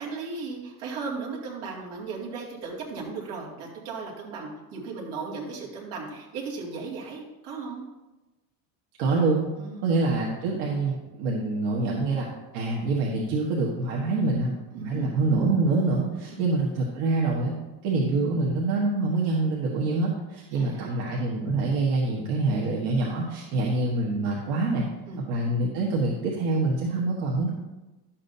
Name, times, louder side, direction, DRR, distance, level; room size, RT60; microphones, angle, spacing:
voice 1, 0.0-7.8 9.6-9.8 14.7-15.1 16.3-16.4 20.5-20.9 23.5-23.6 25.1-25.2, right 4 dB, 65° right, -3 dB, 2.5 m, -36 dB
voice 2, 9.0-9.5 9.8-12.3 12.5-17.5 17.8-24.8 25.3-27.5, right 3 dB, 80° right, -4 dB, 1.6 m, -25 dB
11.5 x 7.4 x 2.7 m, 1.1 s
cardioid pair, 155°, 45 cm